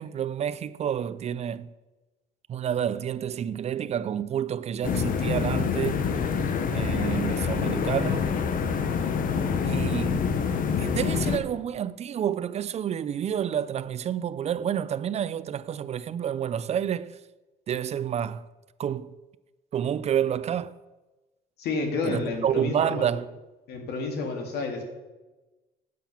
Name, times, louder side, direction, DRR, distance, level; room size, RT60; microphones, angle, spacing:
voice 1, 0.0-1.7 2.5-6.0 6.7-8.3 9.6-10.2 10.8-17.1 17.7-18.5 18.8-19.1 19.7-20.7 22.0-23.3, right 9 dB, 40° right, 0.4 m, -29 dB
sound 1, 4.8-11.4, left 6 dB, 55° left, 1.0 m, -26 dB
voice 2, 21.6-23.1 23.7-24.8, left 3 dB, 75° left, 2.2 m, -30 dB
9.3 x 7.2 x 5.8 m
cardioid pair, 110°, 17 cm